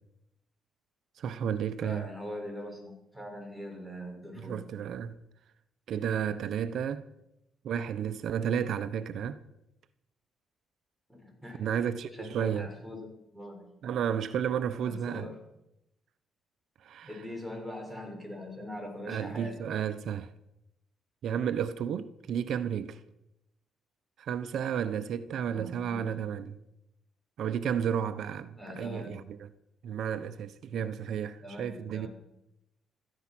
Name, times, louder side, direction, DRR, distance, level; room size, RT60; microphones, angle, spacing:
voice 1, 1.2-2.1 4.4-5.2 5.9-7.1 7.6-9.4 11.6-12.7 13.8-15.3 16.8-17.2 19.1-20.3 21.2-23.0 24.2-26.6 27.4-29.5 29.8-32.1, right 8 dB, 70° right, 0.8 m, -32 dB
voice 2, 1.8-4.7 11.1-11.6 12.1-13.1 13.3-13.7 14.8-15.4 17.0-19.6 25.5-26.3 28.6-29.2 31.4-32.1, left 1 dB, ahead, 6.0 m, -42 dB
16.5 x 14.0 x 6.0 m
cardioid pair, 90°, 0 cm